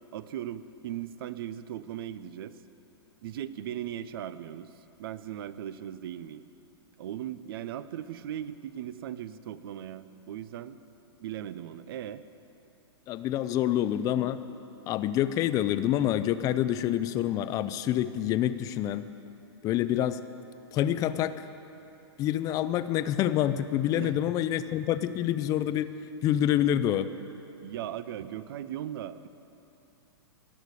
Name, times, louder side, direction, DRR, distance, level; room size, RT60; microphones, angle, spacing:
voice 1, 0.1-2.5 3.2-4.7 5.0-6.4 7.0-10.8 11.2-12.2 23.9-24.1 27.6-29.3, right 11 dB, 55° right, 14 dB, 0.6 m, -38 dB
voice 2, 13.1-14.4 14.9-19.1 19.6-20.2 20.7-21.4 22.2-25.9 26.2-27.1, left 11 dB, 25° left, 13 dB, 0.5 m, -27 dB
17.0 x 6.5 x 9.7 m, 2.8 s
hypercardioid pair, 140°, 14 cm